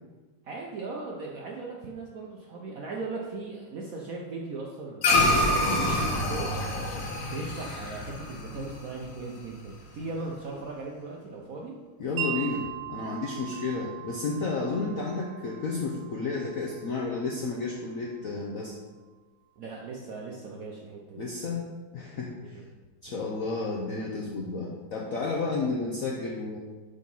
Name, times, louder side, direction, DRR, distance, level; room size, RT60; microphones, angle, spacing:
voice 1, 0.4-6.6 7.2-11.8 19.6-21.3 22.4-22.6 23.1-23.2 25.4-25.6, right 3 dB, 65° right, -2 dB, 0.8 m, -38 dB
sound 1, 5.0-9.6, left 1 dB, 50° left, 1.2 m, -27 dB
voice 2, 12.0-18.7 21.2-21.7 21.9-22.6 23.0-26.6, left 3 dB, 70° left, -1 dB, 0.8 m, -32 dB
Wind chime, 12.2-18.3, right 11 dB, 85° right, 1.8 m, -40 dB
6.5 x 3.9 x 5.3 m, 1.3 s
omnidirectional pair, 2.2 m